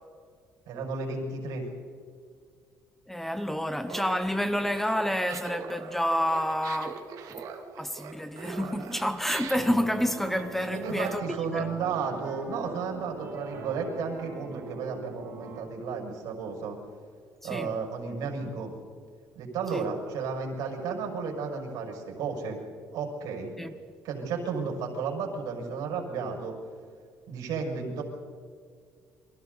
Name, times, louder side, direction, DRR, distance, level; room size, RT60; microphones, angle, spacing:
voice 1, 0.7-1.7 10.7-16.8 17.4-18.7 19.3-22.6 22.9-23.5 24.0-26.6 27.3-28.0, right 5 dB, 85° right, 6.1 m, -33 dB
voice 2, 3.1-7.1 7.8-11.2 11.5-11.7 17.5-17.7 19.7-19.9 23.6-23.7, equal, 5° left, 0.9 m, -29 dB
Laughter, 3.8-11.9, right 6 dB, 65° right, 2.4 m, -42 dB
sound 1, 9.2-15.6, right 4 dB, 40° right, 4.7 m, -42 dB
29.5 x 24.0 x 4.1 m
cardioid pair, 160°, 6 cm